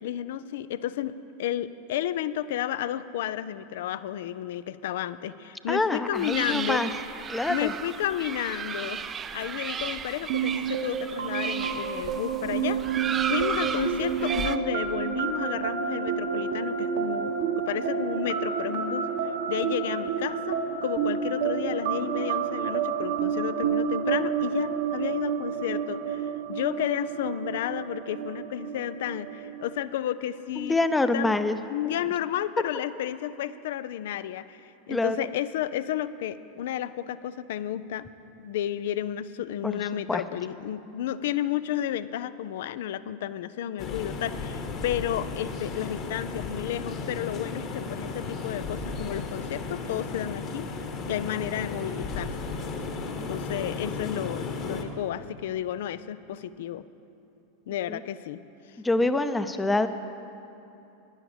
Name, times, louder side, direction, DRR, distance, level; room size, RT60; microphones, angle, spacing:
voice 1, 0.0-6.9 7.5-9.0 9.3-12.8 13.3-30.8 31.1-31.4 31.7-38.1 38.4-50.7 51.1-52.3 53.3-56.8 57.7-58.4 58.7-58.8, left 11 dB, 60° left, 15 dB, 0.4 m, -32 dB
voice 2, 5.7-6.9 7.3-7.7 30.6-31.6 34.9-35.3 39.6-40.2 53.2-53.3 57.9-58.0 58.8-59.9, left 2 dB, 10° left, 10 dB, 0.7 m, -26 dB
sound 1, 6.1-14.6, right 7 dB, 25° right, 0.5 m, -34 dB
sound 2, 10.3-29.8, right 7 dB, 60° right, 1.1 m, -29 dB
sound 3, 43.8-54.8, left 3 dB, 40° left, 1.4 m, -34 dB
16.5 x 11.0 x 5.0 m, 3.0 s
figure-of-eight pair, 85°, 0 cm